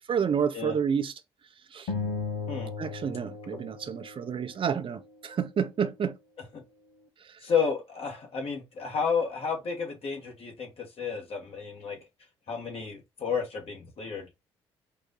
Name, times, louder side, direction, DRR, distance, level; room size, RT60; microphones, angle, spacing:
voice 1, 0.1-1.1 1.7-1.9 2.8-6.1, right 7 dB, 50° right, 0.8 m, -29 dB
sound 1, 1.9-4.5, left 4 dB, 80° left, 0.9 m, -35 dB
voice 2, 7.4-12.0 12.5-14.3, left 6 dB, 55° left, 1.8 m, -31 dB
4.8 x 2.6 x 3.9 m
hypercardioid pair, 50°, 12 cm